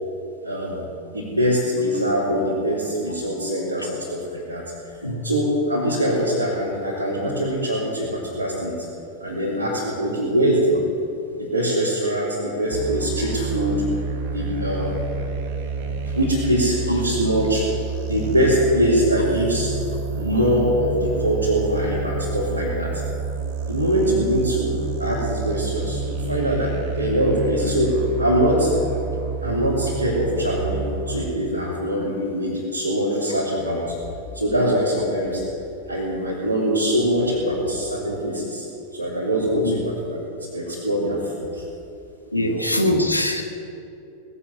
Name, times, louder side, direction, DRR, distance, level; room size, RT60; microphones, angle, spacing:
voice 1, 0.4-4.6 5.2-8.9 9.2-10.8 11.3-13.8 14.2-15.0 15.8-17.7 18.0-19.7 20.1-23.0 23.7-28.7 29.4-34.0 34.3-35.4 35.9-38.7 38.9-41.6 42.3-42.6, equal, 85° right, -10 dB, 3.6 m, -23 dB
sound 1, 12.7-31.3, right 4 dB, 50° right, 1.4 m, -29 dB
voice 2, 42.3-43.4, left 1 dB, 90° left, 4 dB, 1.6 m, -22 dB
19.0 x 8.5 x 8.0 m, 2.8 s
figure-of-eight pair, 90°, 0 cm